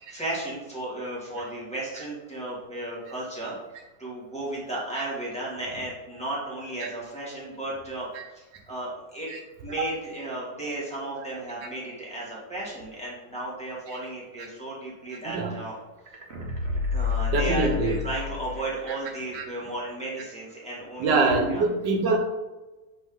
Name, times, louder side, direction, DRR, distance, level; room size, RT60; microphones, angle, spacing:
voice 1, 0.0-3.5 4.0-8.1 8.3-9.3 9.6-15.8 16.9-21.6, right 2 dB, 5° left, -7 dB, 1.8 m, -34 dB
sound 1, 16.1-19.0 19.3-19.4, left 5 dB, 40° right, 1.2 m, -29 dB
voice 2, 17.3-18.0 19.3-19.4 21.0-22.2, right 3 dB, 90° right, 2 dB, 1.7 m, -24 dB
7.8 x 3.6 x 3.9 m, 1.1 s
omnidirectional pair, 1.9 m